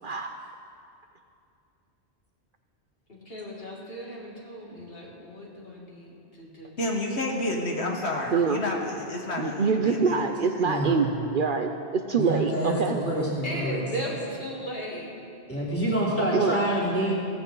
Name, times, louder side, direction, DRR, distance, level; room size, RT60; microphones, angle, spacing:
voice 1, 0.0-0.4 8.3-8.6 9.4-11.1 11.3-13.0 16.3-16.6, right 5 dB, 55° right, 6 dB, 0.8 m, -25 dB
voice 2, 3.1-6.8 13.4-15.1, equal, 55° left, -4 dB, 2.8 m, -37 dB
voice 3, 6.8-10.1, left 1 dB, 70° left, 0 dB, 1.7 m, -30 dB
voice 4, 10.6-11.1 12.1-13.8 15.5-17.1, right 1 dB, 10° left, -6 dB, 3.1 m, -27 dB
17.0 x 15.5 x 3.9 m, 2.6 s
omnidirectional pair, 1.2 m